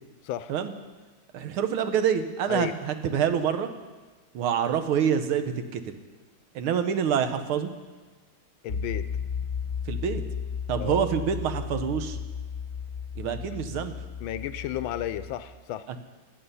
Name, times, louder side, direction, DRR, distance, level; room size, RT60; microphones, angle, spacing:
voice 1, 1.3-3.7 4.3-5.8 6.6-7.7 9.9-10.2 10.7-12.2 13.2-14.0 15.9-16.0, right 8 dB, 80° right, 8 dB, 1.8 m, -26 dB
voice 2, 8.6-9.0 10.8-11.0 14.2-15.9, left 12 dB, 75° left, 13 dB, 1.3 m, -32 dB
sound 1, 8.7-15.3, left 7 dB, 35° left, 1.0 m, -34 dB
18.0 x 9.2 x 5.6 m, 1.3 s
omnidirectional pair, 2.3 m